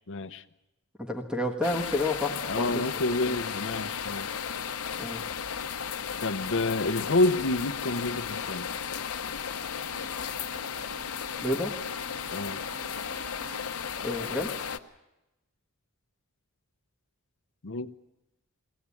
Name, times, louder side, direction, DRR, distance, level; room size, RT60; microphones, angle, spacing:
voice 1, 0.1-0.4 2.3-4.3 6.2-8.7 12.3-12.6 17.6-17.9, left 2 dB, 60° left, 9 dB, 0.8 m, -28 dB
voice 2, 1.0-2.8 3.3-3.4 5.0-5.2 11.4-11.8 14.0-14.6, left 1 dB, 5° right, 4 dB, 1.4 m, -30 dB
sound 1, 1.6-14.8, left 7 dB, 85° left, 1.0 m, -35 dB
Wind instrument woodwind instrument, 9.7-13.7, right 1 dB, 75° right, 1.5 m, -48 dB
22.5 x 17.5 x 8.5 m, 0.97 s
head